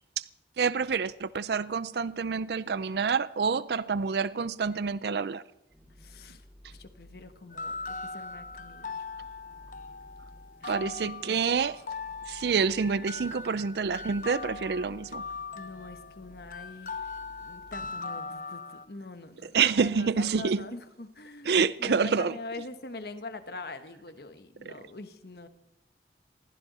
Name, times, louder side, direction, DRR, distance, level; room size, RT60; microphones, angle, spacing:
voice 1, 0.6-5.4 10.6-11.8 12.3-15.2 19.4-20.7 21.4-22.4 24.7-24.8, right 5 dB, 70° right, 0.4 m, -27 dB
sound 1, 5.7-17.9, equal, 5° left, 3.3 m, -54 dB
voice 2, 6.0-9.0 10.6-11.4 15.5-17.1 17.4-25.5, left 3 dB, 60° left, 1.2 m, -44 dB
sound 2, 7.5-18.8, left 4 dB, 45° left, 0.7 m, -40 dB
20.5 x 15.5 x 4.2 m
head